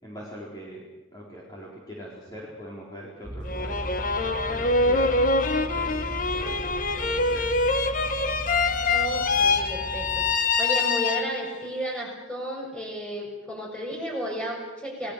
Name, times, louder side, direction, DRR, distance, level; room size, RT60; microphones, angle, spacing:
voice 1, 0.0-0.8 1.1-3.9 4.5-5.2 5.5-6.1 6.3-6.6 7.0-7.5, equal, 20° left, -5 dB, 4.6 m, -42 dB
sound 1, 3.2-10.4, equal, 10° right, 4.3 m, -37 dB
sound 2, 3.4-11.7, left 3 dB, 45° left, 1.4 m, -25 dB
voice 2, 8.8-15.1, right 1 dB, 5° left, 0 dB, 6.6 m, -33 dB
30.0 x 19.5 x 6.8 m, 1.0 s
head